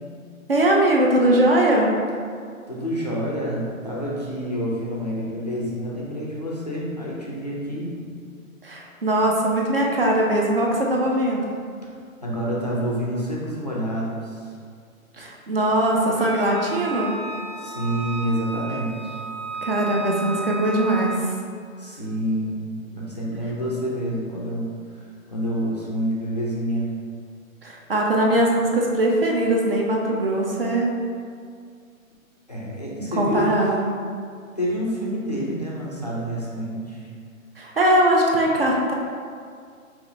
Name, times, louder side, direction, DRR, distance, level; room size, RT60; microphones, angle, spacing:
voice 1, 0.5-1.9 8.6-11.5 15.2-17.1 19.6-21.4 27.6-30.9 33.2-33.9 37.6-38.9, right 1 dB, 45° right, -2 dB, 0.4 m, -21 dB
voice 2, 2.7-8.0 12.2-14.5 17.6-19.2 21.8-24.7 25.0-26.9 32.5-33.5 34.6-37.0, equal, 30° left, -5 dB, 0.4 m, -28 dB
Percussion / Church bell, 16.2-21.2, left 1 dB, 10° right, 0.8 m, -42 dB
Wind instrument woodwind instrument, 16.5-21.2, right 3 dB, 80° right, 0.7 m, -33 dB
4.8 x 3.0 x 2.5 m, 2.2 s
hypercardioid pair, 165°, 42 cm